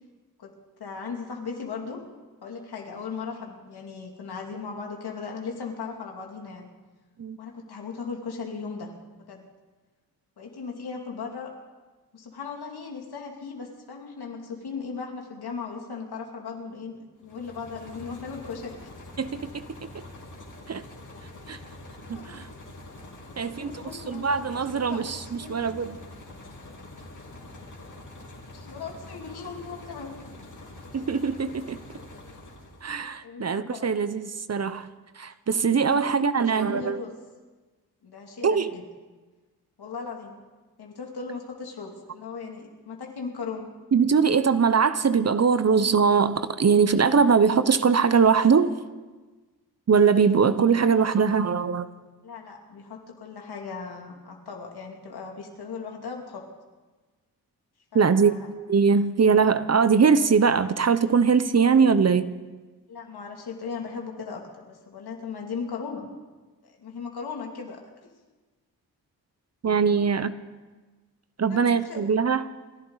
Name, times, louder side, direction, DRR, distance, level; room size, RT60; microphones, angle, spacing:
voice 1, 0.8-2.0 2.4-6.7 7.4-9.4 10.4-11.5 12.1-18.8 22.1-22.4 23.2-24.3 24.7-25.6 28.6-30.1 33.2-33.9 35.9-36.0 36.4-37.1 38.0-38.8 39.8-40.3 40.8-43.7 52.2-56.4 57.9-58.5 62.9-66.1 66.6-67.8 71.5-72.0, left 5 dB, 70° left, 2 dB, 2.7 m, -37 dB
sound 1, 17.2-33.0, left 2 dB, 50° left, 3.3 m, -45 dB
voice 2, 19.2-19.6 20.7-20.8 21.5-21.6 22.1-22.5 23.4-26.0 30.9-31.8 32.8-34.9 35.2-37.0 38.4-38.7 43.9-48.7 49.9-51.9 57.9-58.4 58.7-62.3 69.6-70.3 71.4-72.4, right 6 dB, 40° right, 13 dB, 0.8 m, -21 dB
29.0 x 11.0 x 4.1 m, 1.3 s
supercardioid pair, 45°, 40 cm